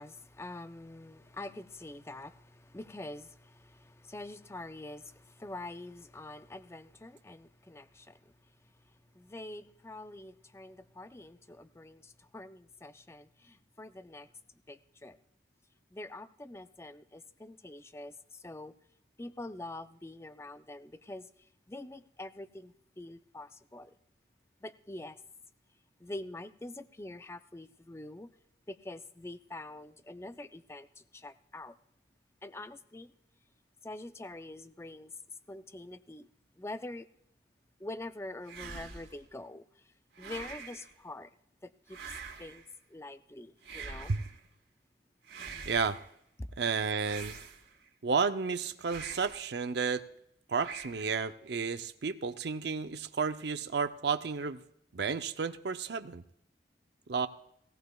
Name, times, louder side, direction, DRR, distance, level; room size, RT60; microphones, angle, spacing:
voice 1, 0.0-14.3 14.7-15.2 15.9-18.7 19.2-23.9 24.6-25.2 26.0-28.3 28.7-31.8 32.4-33.1 33.8-35.1 35.5-36.3 36.6-37.1 37.8-41.3 41.6-44.2 46.4-46.5, left 2 dB, 15° left, 11 dB, 0.5 m, -45 dB
sound 1, 38.4-39.2 40.1-40.9 41.9-42.7 43.6-44.4 45.2-46.1 47.0-47.9 48.8-49.5 50.6-51.3, right 5 dB, 85° right, 2.7 m, -45 dB
voice 2, 45.6-46.0 46.6-47.4 48.0-50.0 50.5-54.6 54.9-56.2 57.1-57.3, right 5 dB, 70° right, 10 dB, 0.6 m, -32 dB
18.0 x 17.5 x 2.3 m, 0.73 s
head